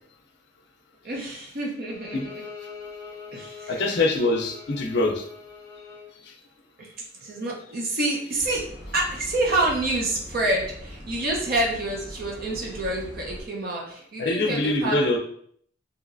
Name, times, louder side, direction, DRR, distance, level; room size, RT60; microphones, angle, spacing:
voice 1, 1.0-2.4 3.3-3.8 6.8-8.6 8.9-15.2, right 2 dB, 50° right, -1 dB, 0.6 m, -28 dB
Bowed string instrument, 1.9-6.1, left 5 dB, 15° left, 0.9 m, -43 dB
voice 2, 3.7-5.3 14.2-15.2, left 2 dB, 60° left, 3 dB, 0.5 m, -24 dB
sound 1, 8.4-13.4, left 1 dB, 5° right, 1.3 m, -41 dB
3.1 x 2.8 x 2.5 m, 0.63 s
head